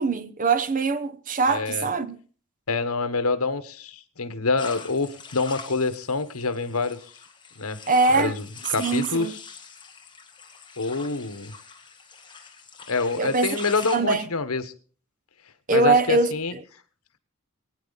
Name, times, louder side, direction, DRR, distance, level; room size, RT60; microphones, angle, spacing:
voice 1, 0.0-2.2 7.9-8.3 8.8-9.3 13.2-13.6 13.9-14.3 15.7-16.6, right 3 dB, 40° right, 0.9 m, -22 dB
voice 2, 1.5-1.9 2.7-7.0 7.6-7.8 8.1-8.4 8.7-9.4 10.8-11.5 12.9-14.6 15.7-16.5, left 3 dB, 85° left, 1.3 m, -26 dB
sound 1, 4.6-14.0, left 5 dB, 20° left, 2.1 m, -43 dB
25.5 x 9.4 x 4.1 m
head